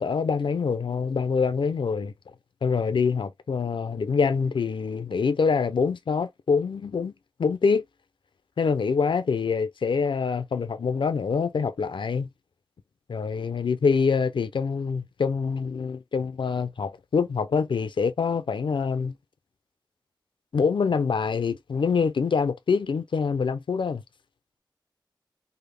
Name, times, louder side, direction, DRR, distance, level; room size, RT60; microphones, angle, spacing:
voice 1, 0.0-2.1 2.6-7.1 7.4-7.8 8.6-12.3 13.1-19.1 20.5-24.0, left 5 dB, 80° left, 0.4 m, -25 dB
3.3 x 2.0 x 3.3 m
wide cardioid pair, 50°, 8 cm